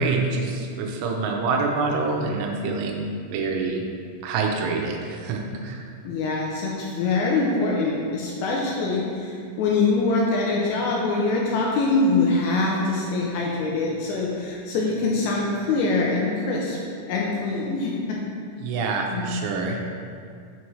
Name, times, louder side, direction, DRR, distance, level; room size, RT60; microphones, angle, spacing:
voice 1, 0.0-3.8 4.2-5.8 18.6-19.8, right 3 dB, 80° right, 1 dB, 3.0 m, -26 dB
voice 2, 6.0-16.8 17.1-18.2 19.1-19.4, left 3 dB, 80° left, -3 dB, 2.7 m, -24 dB
7.7 x 5.8 x 3.2 m, 2.3 s
omnidirectional pair, 5.9 m